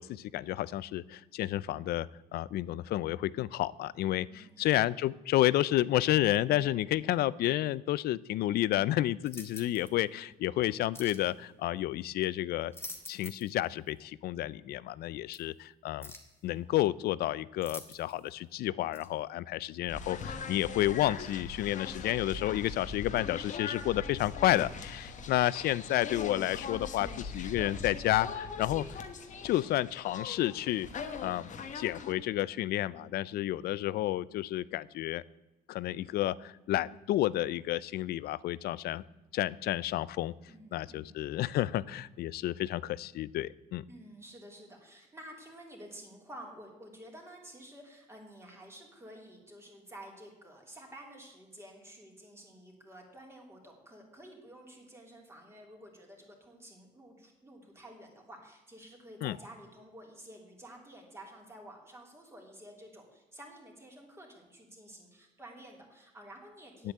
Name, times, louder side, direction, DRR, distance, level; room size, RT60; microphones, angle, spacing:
voice 1, 0.0-12.7 13.1-16.1 16.4-29.0 29.4-30.9 31.2-35.2 35.7-39.0 39.3-40.3 40.7-43.8 59.2-59.4 66.8-66.9, left 14 dB, 65° left, 21 dB, 0.5 m, -31 dB
voice 2, 4.3-4.7 40.5-41.2 43.9-66.9, right 1 dB, 15° right, 0 dB, 3.2 m, -51 dB
sound 1, 9.2-9.9 10.9-11.3 12.5-13.6 13.9-14.0 15.3-15.4 16.0-16.4 17.6-18.3 18.9-19.1, left 2 dB, 15° left, 1.9 m, -46 dB
sound 2, 19.9-32.1, left 5 dB, 45° left, 1.4 m, -41 dB
9.1 x 8.4 x 7.9 m, 1.1 s
cardioid pair, 110°, 17 cm